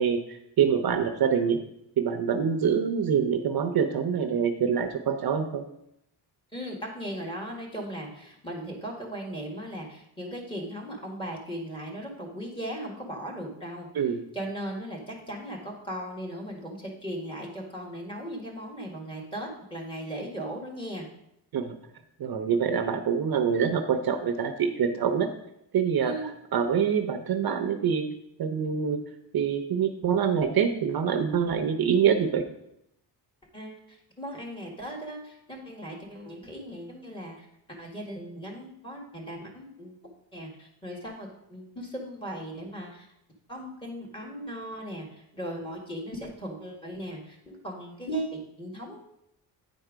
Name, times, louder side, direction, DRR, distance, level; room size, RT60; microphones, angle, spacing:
voice 1, 0.0-1.6 2.0-5.6 13.9-14.2 21.5-21.8 22.2-25.3 25.7-26.1 26.5-28.0 28.4-29.0 29.3-32.4, right 7 dB, 55° right, 6 dB, 0.7 m, -25 dB
voice 2, 6.5-13.9 14.3-21.1 26.0-26.3 33.5-40.0 40.3-43.1 43.5-49.0, right 1 dB, 10° left, -1 dB, 1.7 m, -38 dB
9.1 x 4.5 x 5.0 m, 0.79 s
wide cardioid pair, 145°, 43 cm